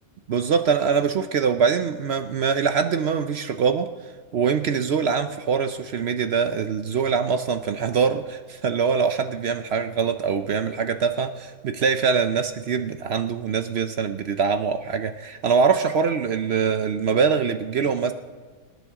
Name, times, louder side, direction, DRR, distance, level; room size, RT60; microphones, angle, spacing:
voice 1, 0.3-3.9 4.3-18.1, right 6 dB, 60° right, 9 dB, 0.8 m, -23 dB
25.5 x 10.5 x 3.7 m, 1.4 s
omnidirectional pair, 1.5 m